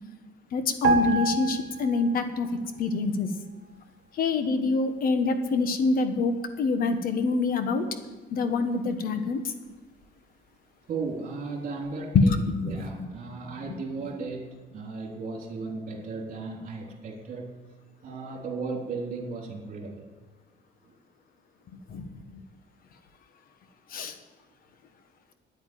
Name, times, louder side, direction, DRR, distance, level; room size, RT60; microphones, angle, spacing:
voice 1, 0.5-2.5 2.8-3.3 4.2-7.8 8.3-9.4 12.1-12.7 21.9-22.1 23.9-24.1, left 3 dB, 50° left, 8 dB, 1.3 m, -25 dB
sound 1, 0.8-2.5 2.7-3.0, right 3 dB, 75° right, 1.4 m, -27 dB
voice 2, 10.9-17.5 18.0-20.1, right 4 dB, 45° right, 1 dB, 3.4 m, -35 dB
9.9 x 8.9 x 9.4 m, 1.2 s
cardioid pair, 150°, 18 cm